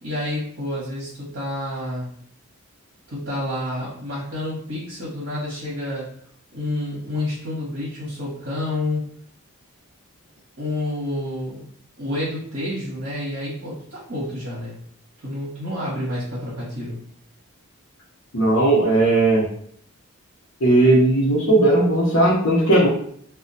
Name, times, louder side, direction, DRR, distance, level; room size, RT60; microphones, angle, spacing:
voice 1, 0.0-2.1 3.1-6.1 6.5-9.1 10.6-11.6 12.0-14.8 15.2-17.0, left 1 dB, 60° right, -7 dB, 0.9 m, -29 dB
voice 2, 18.3-19.4 20.6-22.9, right 2 dB, 65° left, -8 dB, 0.7 m, -17 dB
2.2 x 2.1 x 3.8 m, 0.63 s
head